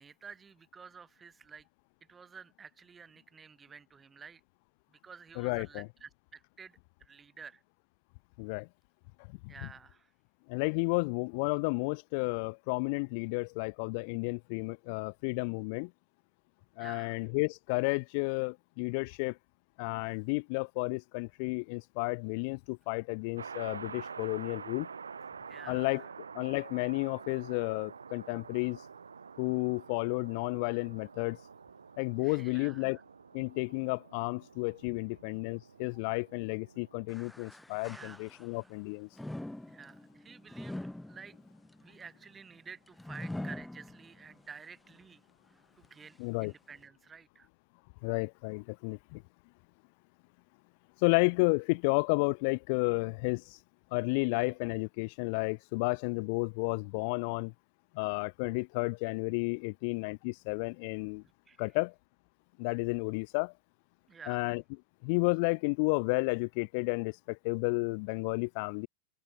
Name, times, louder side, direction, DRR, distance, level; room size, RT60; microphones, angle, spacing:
voice 1, 0.0-1.7 2.1-4.4 4.9-7.6 9.5-10.1 16.8-17.2 25.5-26.1 32.2-33.0 37.9-38.2 39.7-41.4 41.8-45.2 45.8-47.5 61.5-61.7 64.1-64.5, right 6 dB, 15° right, 6.0 m, -51 dB
voice 2, 5.4-5.8 8.4-8.7 9.4-9.5 10.5-15.9 16.8-19.4 19.8-24.9 25.7-26.0 26.3-28.8 29.4-31.4 32.0-33.0 33.3-39.1 46.2-46.5 48.0-49.2 51.0-53.6 53.9-57.5 57.9-61.2 61.6-61.9 62.6-63.5 64.3-64.6 65.0-68.9, left 32 dB, 45° left, 0.7 m, -32 dB
sound 1, 23.4-37.3, right 6 dB, 75° right, 3.3 m, -48 dB
sound 2, 37.1-38.7 39.1-44.4 44.9-45.0 45.8-45.9, left 1 dB, 5° left, 4.5 m, -44 dB
figure-of-eight pair, 90°, 0 cm